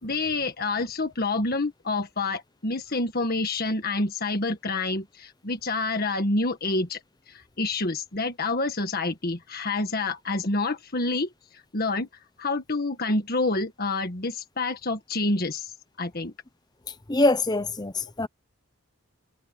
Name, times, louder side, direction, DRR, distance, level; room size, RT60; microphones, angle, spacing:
voice 1, 0.0-7.0 7.3-12.1 12.4-16.3, left 2 dB, 45° left, 1.6 m, -28 dB
voice 2, 17.1-18.3, left 2 dB, 20° left, 0.7 m, -23 dB
head